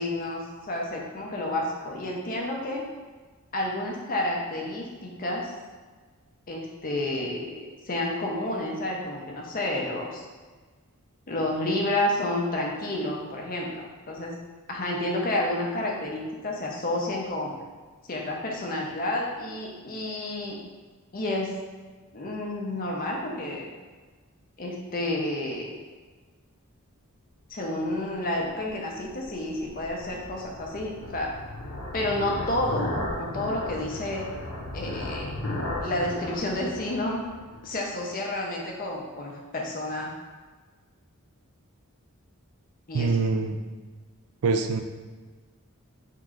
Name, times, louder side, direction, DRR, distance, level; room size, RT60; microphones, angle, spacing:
voice 1, 0.0-2.8 3.5-5.5 6.5-7.5 7.8-10.3 11.3-14.4 14.7-17.5 18.1-20.6 21.1-21.6 22.1-23.7 24.6-25.8 27.5-31.3 31.9-34.3 34.7-35.3 35.8-37.2 37.6-40.1 42.9-43.1, left 1 dB, 40° left, -1 dB, 0.7 m, -30 dB
sound 1, 28.3-37.8, left 1 dB, 75° left, 0.8 m, -36 dB
voice 2, 42.9-43.6 44.4-44.8, right 4 dB, 75° right, 6 dB, 0.4 m, -24 dB
3.7 x 3.1 x 3.7 m, 1.4 s
head